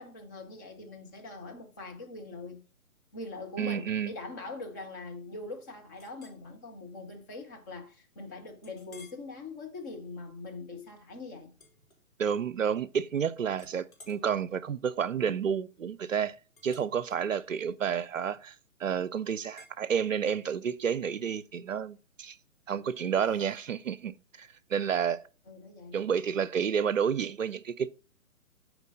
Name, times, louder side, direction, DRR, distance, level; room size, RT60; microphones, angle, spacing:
voice 1, 0.0-2.6 3.1-11.5 25.5-26.0, left 3 dB, 15° left, 0.7 m, -42 dB
voice 2, 3.6-4.1 12.2-16.4 16.6-18.5 18.8-22.4 22.7-25.2 25.9-27.9, right 7 dB, 65° right, 0.6 m, -30 dB
Chink clink, 6.0-6.4 7.0-7.2 7.6-7.7 8.6-9.3 9.8-10.1 11.5-12.5 12.8-13.2 13.5-18.7 19.6-19.8, left 2 dB, 70° left, 3.3 m, -58 dB
8.1 x 4.5 x 5.2 m
figure-of-eight pair, 135°, 43 cm